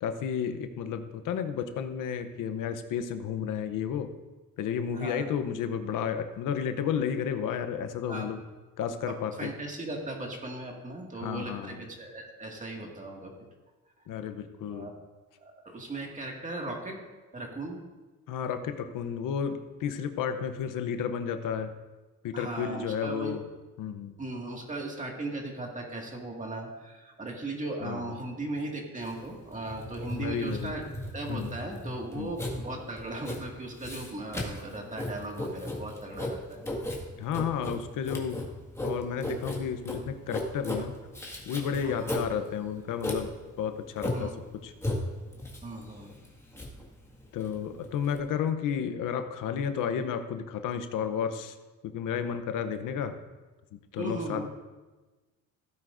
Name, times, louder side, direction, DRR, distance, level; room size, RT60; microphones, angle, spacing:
voice 1, 0.0-4.1 4.6-8.4 8.8-9.5 11.2-11.8 14.1-14.9 18.3-21.7 22.2-23.4 23.8-24.1 27.8-28.2 30.1-30.7 31.3-31.5 32.1-32.3 37.2-38.5 38.8-41.0 41.5-43.3 43.6-44.4 44.6-44.7 47.3-51.6 51.8-53.2 53.9-54.5, left 7 dB, 85° left, 8 dB, 0.8 m, -32 dB
voice 2, 4.9-5.3 8.1-8.3 9.4-13.3 14.7-14.9 15.4-17.0 17.3-17.8 22.3-23.3 24.2-30.8 31.1-36.6 41.8-42.1 44.1-44.3 45.6-46.1 54.0-54.5, right 2 dB, 25° right, 0 dB, 2.0 m, -37 dB
Writing, 29.0-48.2, left 1 dB, 10° left, 1.8 m, -36 dB
16.0 x 9.2 x 2.6 m, 1.2 s
cardioid pair, 115°, 31 cm